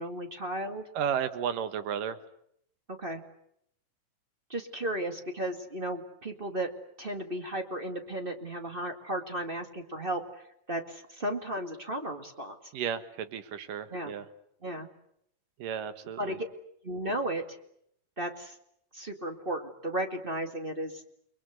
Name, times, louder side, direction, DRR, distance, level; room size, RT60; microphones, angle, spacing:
voice 1, 0.0-0.9 2.9-3.2 4.5-6.7 7.0-12.6 13.9-14.1 14.6-14.9 16.2-16.5 16.8-17.4 18.2-18.6 18.9-21.0, right 1 dB, 20° right, 5 dB, 1.7 m, -34 dB
voice 2, 0.9-2.2 12.7-14.3 15.6-16.4, right 8 dB, 80° right, 11 dB, 3.0 m, -33 dB
30.0 x 22.0 x 8.2 m, 0.73 s
omnidirectional pair, 3.8 m